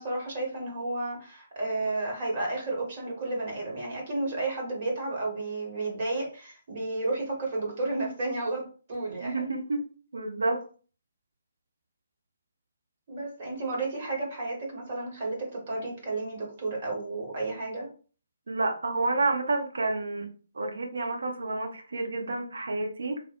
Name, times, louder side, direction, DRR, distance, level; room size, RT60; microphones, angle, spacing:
voice 1, 0.0-8.6 8.9-9.5 13.1-17.9, right 2 dB, 40° right, -2 dB, 1.2 m, -32 dB
voice 2, 9.2-9.8 10.1-10.6 18.5-20.3 20.5-23.2, right 2 dB, 60° right, 3 dB, 0.7 m, -29 dB
3.7 x 2.1 x 2.5 m, 0.39 s
figure-of-eight pair, 135°, 0 cm